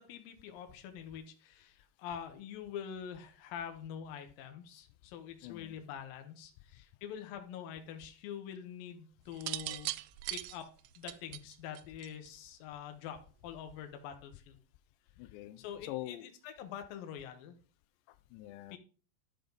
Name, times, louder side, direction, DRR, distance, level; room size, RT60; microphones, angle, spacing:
voice 1, 0.0-10.0 10.3-10.7 11.0-14.6 15.6-17.6 18.7-18.8, left 8 dB, 70° left, 2.6 m, -45 dB
voice 2, 5.4-5.8 6.7-6.8 15.2-16.3 18.1-18.8, left 15 dB, 90° left, 2.8 m, -45 dB
sound 1, 9.3-12.5 13.6-13.9, right 18 dB, 90° right, 2.7 m, -40 dB
12.0 x 5.1 x 3.9 m
omnidirectional pair, 4.9 m